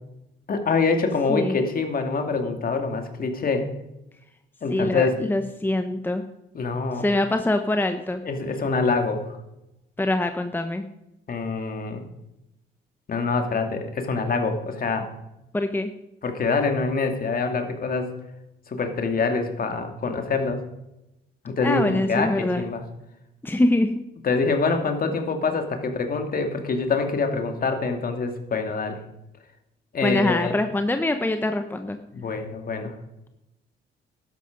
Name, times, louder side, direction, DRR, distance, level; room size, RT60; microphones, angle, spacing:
voice 1, 0.5-3.7 4.6-5.1 6.5-7.0 8.2-9.4 11.3-12.0 13.1-15.1 16.2-18.1 18.7-20.6 21.4-22.8 24.2-29.0 29.9-30.6 32.1-32.9, left 4 dB, 45° left, 5 dB, 2.3 m, -25 dB
voice 2, 1.3-1.6 4.7-6.2 7.0-8.2 10.0-10.8 15.5-15.9 21.6-22.6 23.4-23.9 30.0-32.0, left 1 dB, 10° left, 7 dB, 0.9 m, -24 dB
12.5 x 10.5 x 5.2 m, 0.90 s
cardioid pair, 90°, 20 cm